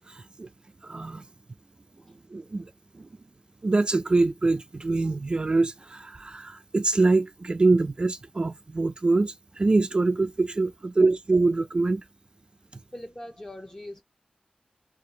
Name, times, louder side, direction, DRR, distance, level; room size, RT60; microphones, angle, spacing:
voice 1, 0.2-0.5 0.8-1.3 2.3-3.1 3.6-12.0, right 3 dB, 35° right, 0.3 m, -24 dB
voice 2, 12.9-14.0, left 1 dB, 20° left, 0.9 m, -41 dB
2.8 x 2.5 x 3.8 m
wide cardioid pair, 85°, 3 cm